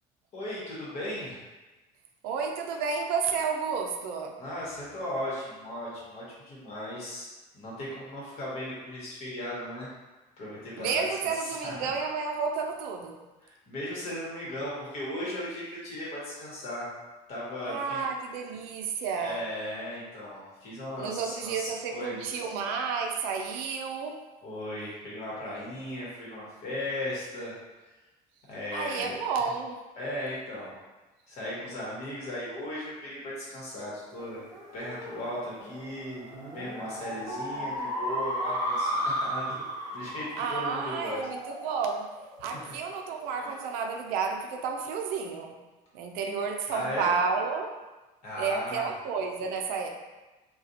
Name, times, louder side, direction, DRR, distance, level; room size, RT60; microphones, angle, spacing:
voice 1, 0.3-1.4 4.4-7.3 7.5-9.9 10.4-11.0 11.3-11.9 13.4-16.9 17.3-18.0 19.2-22.4 24.4-27.5 28.5-29.1 29.4-29.5 30.0-30.7 31.3-34.4 34.7-39.4 39.9-41.3 42.6-42.7 43.4-43.5 46.7-47.1 48.2-48.9, left 1 dB, 45° left, -6 dB, 1.3 m, -37 dB
voice 2, 2.2-4.4 10.8-13.2 17.6-19.4 21.0-24.2 28.7-29.8 40.4-42.1 42.4-45.6 45.9-47.7 48.3-49.9, right 5 dB, 80° right, 3 dB, 0.5 m, -31 dB
sound 1, 34.2-43.0, equal, 25° right, 0.8 m, -35 dB
4.0 x 2.3 x 2.8 m, 1.1 s
cardioid pair, 170°, 15 cm